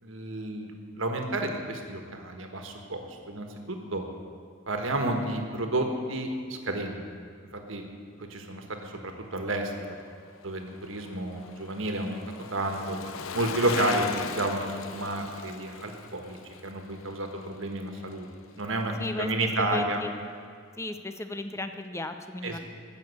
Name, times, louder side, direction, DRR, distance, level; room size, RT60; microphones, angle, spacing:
voice 1, 0.0-4.0 4.7-7.2 7.5-7.8 8.2-9.9 10.4-12.2 12.5-13.0 13.3-16.4 16.6-18.3 18.6-18.9 19.2-20.0 22.4-22.6, right 1 dB, 70° right, 4 dB, 1.5 m, -31 dB
Bicycle, 9.9-18.3 18.6-18.7, left 5 dB, 85° left, 0.7 m, -39 dB
voice 2, 19.0-20.1 20.8-22.6, left 1 dB, 15° left, 8 dB, 0.6 m, -35 dB
14.5 x 6.6 x 8.4 m, 2.1 s
head